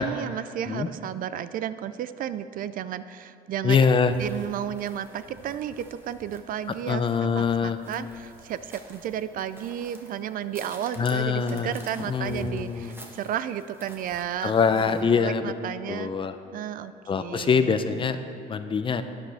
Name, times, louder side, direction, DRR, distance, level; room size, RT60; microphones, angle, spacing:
voice 1, 0.0-3.9 4.2-7.1 7.3-16.1 16.5-17.7 18.2-18.4, right 10 dB, 55° right, 14 dB, 0.4 m, -33 dB
voice 2, 3.6-4.1 6.9-7.8 11.0-11.7 12.0-12.9 14.4-15.4 15.9-16.3 17.1-18.2 18.5-19.0, left 5 dB, 30° left, 10 dB, 0.6 m, -24 dB
sound 1, 3.9-15.0, right 1 dB, 15° right, 1.4 m, -48 dB
12.5 x 9.6 x 3.5 m, 2.8 s
cardioid pair, 110°, 17 cm